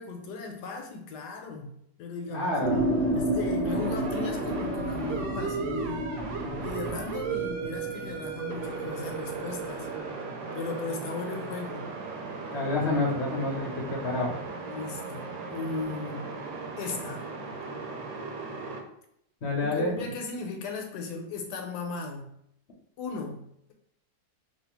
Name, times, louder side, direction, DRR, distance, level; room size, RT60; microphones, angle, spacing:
voice 1, 0.0-6.1 6.6-9.9 10.5-12.0 14.7-16.4 16.8-17.3 19.6-22.4 23.0-23.7, left 4 dB, 75° left, 3 dB, 1.2 m, -37 dB
voice 2, 2.3-2.9 12.5-14.3 19.4-20.0, left 2 dB, 50° left, -2 dB, 0.9 m, -28 dB
sound 1, 2.6-10.1, right 1 dB, 45° right, 1.2 m, -31 dB
sound 2, 3.6-18.8, right 5 dB, 90° right, 1.4 m, -37 dB
3.4 x 2.4 x 4.4 m, 0.72 s
omnidirectional pair, 1.9 m